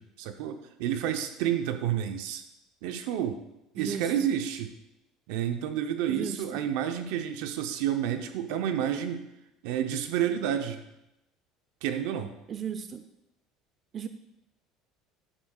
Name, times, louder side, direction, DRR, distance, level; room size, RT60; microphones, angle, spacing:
voice 1, 0.0-2.4 2.8-3.4 3.7-4.7 5.3-9.2 9.6-10.8 11.8-12.3, right 10 dB, 75° right, 7 dB, 0.7 m, -30 dB
voice 2, 6.1-6.4 12.5-13.0 13.9-14.1, right 7 dB, 40° right, 9 dB, 0.5 m, -35 dB
9.9 x 7.8 x 2.4 m, 0.89 s
supercardioid pair, 90°, 0 cm